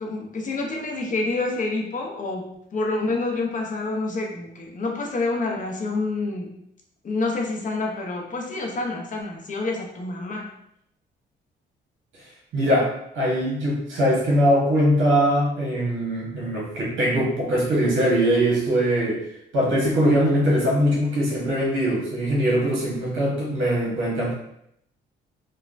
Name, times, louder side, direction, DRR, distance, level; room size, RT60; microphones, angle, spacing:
voice 1, 0.0-6.5 7.0-10.5, left 3 dB, 40° left, 1 dB, 0.6 m, -28 dB
voice 2, 12.5-19.2 19.5-24.3, equal, 75° right, -4 dB, 1.1 m, -21 dB
3.2 x 2.1 x 2.5 m, 0.75 s
cardioid pair, 90°, 20 cm